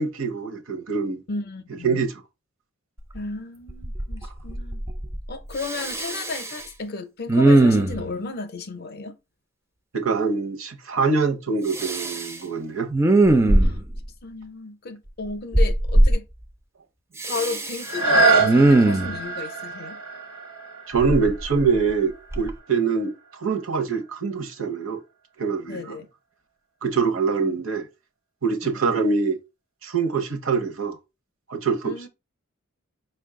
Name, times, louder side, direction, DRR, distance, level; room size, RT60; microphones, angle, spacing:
voice 1, 0.0-1.2 1.8-2.1 9.9-12.9 20.9-25.0 25.4-26.0 26.8-27.9 28.4-29.4 29.8-31.0 31.5-32.1, right 5 dB, 65° right, 0.7 m, -24 dB
voice 2, 1.3-2.0 3.1-4.8 5.3-9.1 13.6-13.8 14.2-16.3 17.2-20.0 25.7-26.1 28.6-28.8 31.8-32.1, left 3 dB, 45° left, 0.5 m, -33 dB
Respiratory sounds, 3.2-3.3 3.7-4.2 4.5-5.2 5.6-6.6 7.3-8.1 11.7-12.3 12.9-14.0 15.5-16.1 17.2-17.9 18.4-19.2 21.0-21.9 22.3-22.5, right 2 dB, 15° right, 0.3 m, -19 dB
sound 1, 17.8-23.5 24.0-24.1, right 3 dB, 85° right, 1.1 m, -25 dB
5.1 x 2.2 x 3.6 m
head